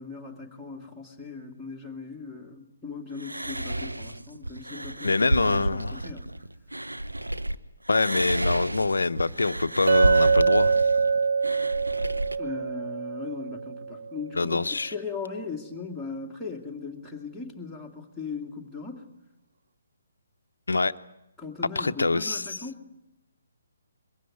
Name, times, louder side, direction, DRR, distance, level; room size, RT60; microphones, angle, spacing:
voice 1, 0.0-6.3 12.4-19.0 21.4-22.8, left 4 dB, 5° left, 2.3 m, -38 dB
sound 1, 3.2-7.6 7.9-12.4, right 1 dB, 85° right, 1.0 m, -31 dB
voice 2, 5.0-6.0 7.9-10.9 14.3-14.9 20.7-20.9 21.8-22.6, left 3 dB, 70° left, 0.7 m, -25 dB
Chink clink, 9.9-14.1, right 5 dB, 55° right, 0.7 m, -24 dB
22.0 x 15.5 x 9.5 m
figure-of-eight pair, 135°, 0 cm